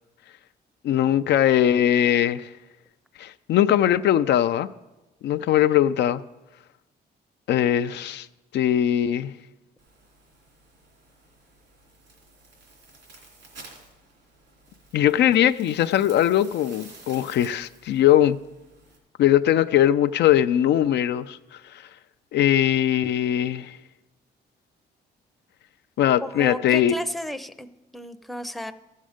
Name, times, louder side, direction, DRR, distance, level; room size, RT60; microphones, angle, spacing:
voice 1, 0.8-2.5 3.2-4.7 5.2-6.2 7.5-8.3 8.5-9.3 14.9-18.4 19.2-21.6 22.3-23.8 26.0-26.9, left 11 dB, 75° left, 0.4 m, -20 dB
sound 1, 9.8-19.0, right 3 dB, 85° right, 2.9 m, -51 dB
voice 2, 26.2-27.7 27.9-28.7, left 1 dB, ahead, 0.5 m, -33 dB
14.5 x 6.4 x 5.0 m
cardioid pair, 85°, 18 cm